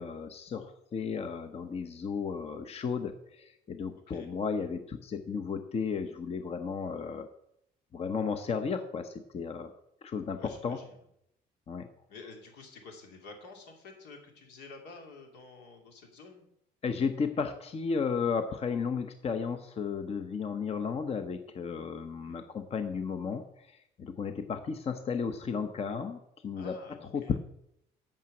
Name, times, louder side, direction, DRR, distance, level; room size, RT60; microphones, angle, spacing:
voice 1, 0.0-7.3 7.9-9.7 10.0-10.8 11.7-11.9 16.8-27.4, left 5 dB, 35° left, 8 dB, 0.8 m, -34 dB
voice 2, 10.3-10.9 12.1-16.4 22.2-22.5 26.6-27.3, left 3 dB, 80° left, 2 dB, 2.7 m, -50 dB
9.0 x 6.0 x 7.6 m, 0.77 s
cardioid pair, 110°, 17 cm